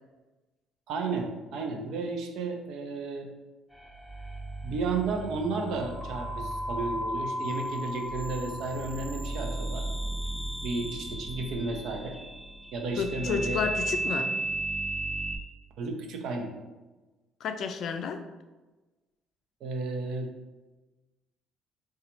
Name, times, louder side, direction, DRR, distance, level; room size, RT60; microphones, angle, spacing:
voice 1, 0.9-3.3 4.6-9.8 10.6-12.2 12.7-13.6 14.2-14.3 15.8-16.5 19.6-20.3, right 3 dB, 70° right, 3 dB, 0.6 m, -33 dB
sound 1, 3.7-15.4, right 1 dB, ahead, 0.7 m, -34 dB
voice 2, 13.0-14.3 17.4-18.2, left 6 dB, 60° left, 7 dB, 0.4 m, -31 dB
3.9 x 2.3 x 2.9 m, 1.2 s
supercardioid pair, 80°, 0 cm